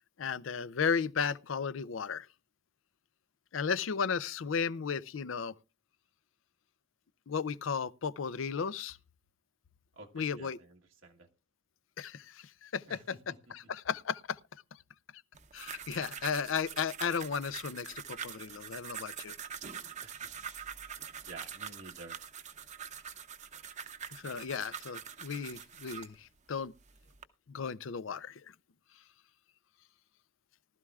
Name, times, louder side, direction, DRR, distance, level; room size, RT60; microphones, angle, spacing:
voice 1, 0.2-2.3 3.5-5.5 7.3-9.0 10.1-10.6 12.0-14.4 15.5-19.3 24.1-26.7 27.5-28.5, left 6 dB, 80° left, 0.5 m, -35 dB
voice 2, 9.9-11.3 12.9-13.0 20.0-20.1 21.2-22.2, right 3 dB, 85° right, 1.3 m, -50 dB
sound 1, 15.3-26.2 26.8-27.2, right 7 dB, 40° right, 0.8 m, -44 dB
19.0 x 12.5 x 2.4 m
head